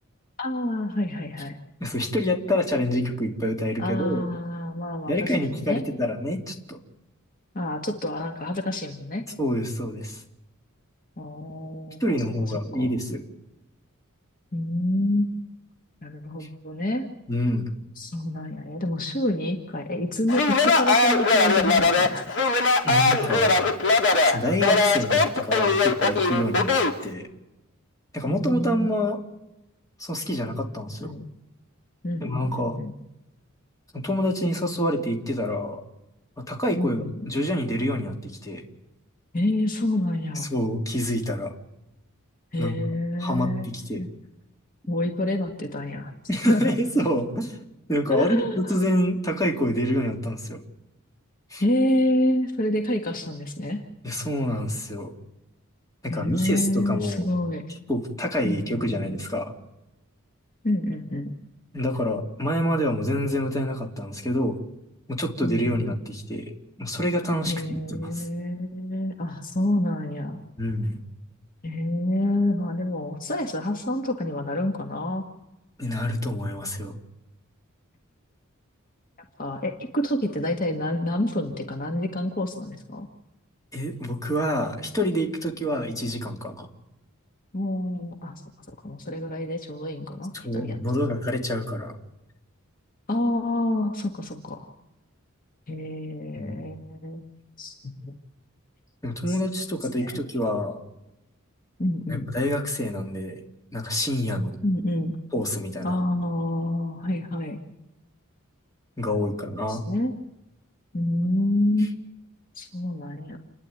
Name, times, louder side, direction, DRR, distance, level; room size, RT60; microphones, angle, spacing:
voice 1, 0.4-1.5 3.8-5.8 7.5-9.2 11.2-12.0 12.4-12.9 14.5-15.4 16.0-17.0 18.0-22.4 28.2-28.9 30.9-31.3 32.0-32.9 36.7-37.4 39.3-40.5 42.5-43.7 44.0-44.1 44.9-46.1 46.5-46.7 48.1-48.8 51.6-53.8 56.1-57.6 58.4-59.1 60.6-61.3 65.4-66.0 67.5-70.4 71.6-75.2 79.4-83.1 87.5-88.3 88.8-90.8 93.1-94.7 95.7-97.3 97.6-98.1 99.3-99.4 100.0-100.2 101.8-102.3 104.6-105.2 105.8-107.6 109.7-110.1 110.9-112.1 112.5-113.4, left 1 dB, 40° left, 2 dB, 1.8 m, -28 dB
voice 2, 1.8-4.2 5.1-6.8 9.4-10.2 12.0-13.2 17.3-17.7 22.8-23.6 24.2-26.7 27.0-27.3 28.1-29.2 30.0-31.1 32.2-32.8 33.9-35.8 36.4-38.6 40.5-41.5 42.6-42.8 43.2-44.0 46.3-47.6 47.9-50.6 51.5-51.6 54.0-55.1 56.0-57.3 57.9-59.5 61.7-64.6 65.1-68.0 70.6-71.0 75.8-76.9 83.7-86.7 90.4-91.9 96.3-96.6 99.0-100.8 102.1-103.4 103.7-104.6 105.3-106.0 109.0-109.8, left 1 dB, 15° left, 1 dB, 2.8 m, -27 dB
Speech, 20.3-27.0, left 3 dB, 60° left, 2.5 m, -20 dB
29.5 x 11.0 x 9.3 m, 0.96 s
head